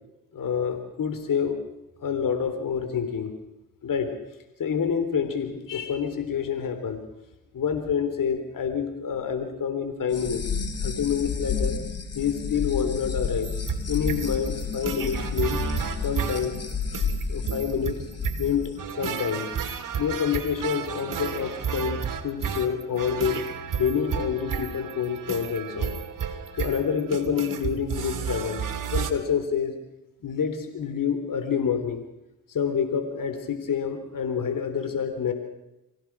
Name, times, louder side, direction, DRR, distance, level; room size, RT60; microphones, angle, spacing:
voice 1, 0.3-1.6 2.0-3.3 3.8-4.1 4.6-7.0 7.5-10.5 10.8-11.8 12.2-13.5 13.9-15.6 16.0-16.6 17.3-18.0 18.4-19.5 20.0-23.4 23.8-25.9 26.5-28.7 28.9-29.8 30.2-32.0 32.5-35.3, left 7 dB, 70° left, 8 dB, 3.8 m, -27 dB
sound 1, 10.1-18.7, left 5 dB, 45° left, 4.0 m, -31 dB
sound 2, 13.4-29.1, right 7 dB, 65° right, 2.6 m, -32 dB
26.0 x 16.5 x 6.3 m, 0.91 s
supercardioid pair, 55°, 34 cm